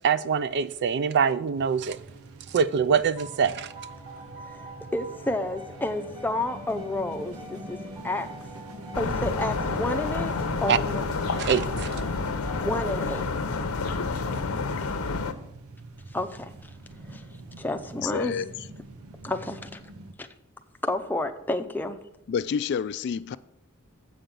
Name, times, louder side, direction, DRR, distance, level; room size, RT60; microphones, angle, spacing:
voice 1, 0.0-2.0 2.5-3.7 10.7-10.8 11.3-11.9, right 6 dB, 55° right, 0.4 m, -24 dB
sound 1, 1.5-20.1, right 2 dB, 90° right, 0.8 m, -44 dB
sound 2, 3.2-13.5, right 1 dB, 20° right, 3.3 m, -46 dB
voice 2, 4.9-7.8 8.0-8.3 9.0-10.4 10.6-11.0 12.5-13.3 16.1-16.5 17.1-17.2 17.6-18.3 19.2-19.8 20.2-20.3 20.8-22.0, left 2 dB, 10° left, 0.6 m, -30 dB
sound 3, 8.9-15.3, left 4 dB, 85° left, 0.7 m, -29 dB
voice 3, 18.0-18.5 22.3-23.4, left 7 dB, 55° left, 0.3 m, -28 dB
7.9 x 5.3 x 7.3 m
head